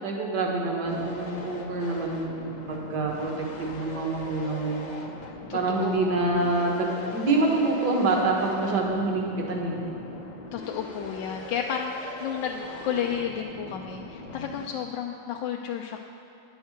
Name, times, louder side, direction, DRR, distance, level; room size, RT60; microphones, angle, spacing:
voice 1, 0.0-4.9 5.5-9.8, right 2 dB, 60° right, 0 dB, 2.0 m, -26 dB
sound 1, 0.8-14.7, left 2 dB, 50° left, 0.5 m, -41 dB
voice 2, 5.5-6.2 10.5-16.1, left 8 dB, 80° left, 2 dB, 1.2 m, -32 dB
9.7 x 7.9 x 6.4 m, 2.8 s
omnidirectional pair, 2.0 m